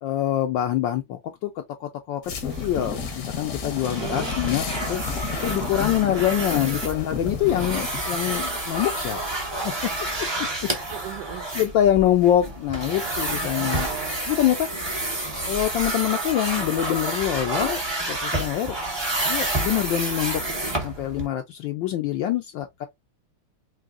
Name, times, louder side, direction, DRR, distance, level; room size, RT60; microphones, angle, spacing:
voice 1, 0.0-2.3 2.6-9.9 11.5-13.9 14.3-14.7 15.5-18.8 19.3-20.4 20.8-22.9, left 12 dB, 75° left, 1.1 m, -25 dB
sound 1, 2.2-10.3, left 5 dB, 55° left, 0.9 m, -33 dB
sound 2, 2.5-21.3, right 1 dB, 30° right, 0.5 m, -29 dB
voice 2, 3.9-4.3 10.9-11.5 13.5-14.2, right 13 dB, 80° right, 0.9 m, -36 dB
4.9 x 2.7 x 2.4 m
omnidirectional pair, 2.4 m